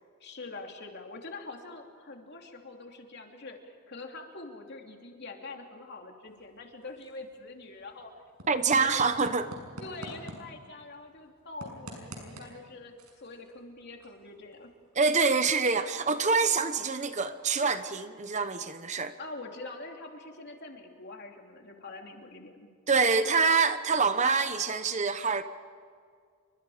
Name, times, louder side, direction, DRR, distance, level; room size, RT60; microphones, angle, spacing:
voice 1, 0.2-8.1 8.6-9.2 9.8-14.7 19.2-22.7, left 3 dB, 50° left, 2 dB, 3.1 m, -44 dB
sound 1, 6.3-18.0, equal, 85° right, 6.4 m, -50 dB
voice 2, 8.5-9.5 14.9-19.1 22.9-25.4, right 4 dB, 30° right, 10 dB, 0.9 m, -26 dB
29.5 x 24.5 x 5.0 m, 2.1 s
head